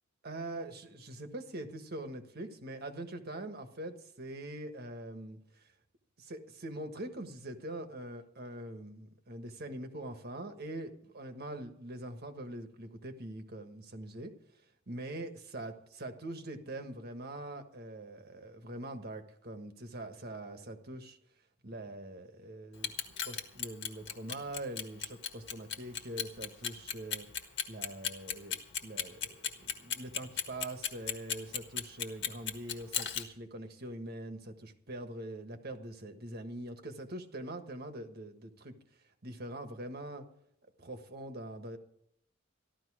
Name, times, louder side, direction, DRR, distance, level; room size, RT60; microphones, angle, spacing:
voice 1, 0.2-5.4 6.2-14.3 14.9-21.2 21.6-27.3 27.7-38.7 39.2-40.2 40.8-41.8, right 1 dB, 50° right, 7 dB, 1.5 m, -43 dB
Clock, 22.7-33.2, left 8 dB, 65° left, 1.6 m, -35 dB
14.5 x 12.0 x 4.9 m, 0.73 s
head